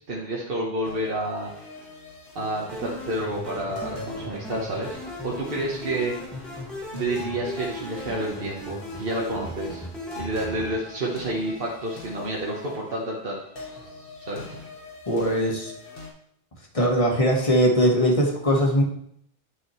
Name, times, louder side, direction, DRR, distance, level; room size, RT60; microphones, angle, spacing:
voice 1, 0.1-1.5 2.3-6.1 6.9-9.8 10.1-13.4 14.3-14.6, right 1 dB, 60° right, -3 dB, 1.4 m, -29 dB
sound 1, 0.8-16.1, left 3 dB, 60° left, 1.5 m, -43 dB
sound 2, 2.7-10.7, left 1 dB, ahead, 1.9 m, -37 dB
voice 2, 15.1-15.7 16.7-18.8, equal, 35° left, 0 dB, 1.5 m, -20 dB
9.6 x 5.9 x 3.1 m, 0.70 s
omnidirectional pair, 1.0 m